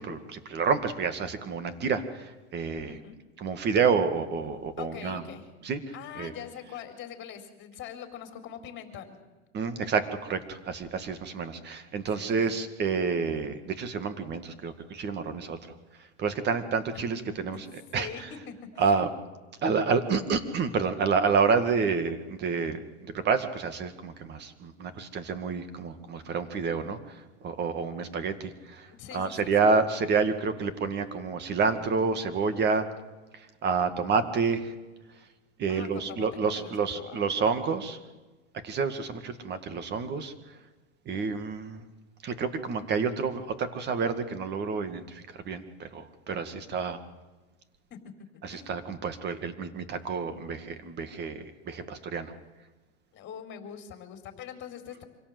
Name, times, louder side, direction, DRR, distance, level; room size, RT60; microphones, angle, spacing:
voice 1, 0.0-3.0 3.4-5.2 5.6-5.8 6.2-6.3 9.5-15.6 16.2-17.6 17.9-18.3 18.8-19.1 19.6-27.0 27.4-28.9 29.1-32.9 33.6-34.7 35.6-38.0 38.6-40.3 41.1-41.8 42.2-47.0 48.4-52.3, right 5 dB, 30° right, 10 dB, 2.1 m, -29 dB
voice 2, 4.8-5.5 5.9-9.1 12.2-12.3 16.9-17.0 17.9-19.1 29.0-29.5 35.7-37.3 46.5-46.6 47.9-48.1 48.5-48.9 53.1-55.0, left 8 dB, 35° left, 6 dB, 4.2 m, -43 dB
25.5 x 17.5 x 7.9 m, 1.2 s
supercardioid pair, 140°, 35 cm